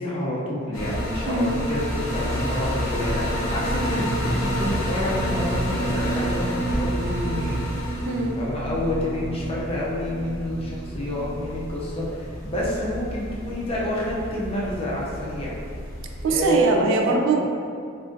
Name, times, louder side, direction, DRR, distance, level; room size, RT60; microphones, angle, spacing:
voice 1, 0.0-7.6 8.4-15.6 16.3-17.2, left 1 dB, 30° left, -5 dB, 0.5 m, -28 dB
sound 1, 0.7-16.3, equal, 90° left, 0.7 m, -29 dB
voice 2, 1.3-1.7 8.0-8.4 16.2-17.5, right 3 dB, 65° right, 2 dB, 0.3 m, -22 dB
sound 2, 6.6-7.5, equal, 90° right, 0.8 m, -39 dB
2.5 x 2.4 x 3.7 m, 2.3 s
head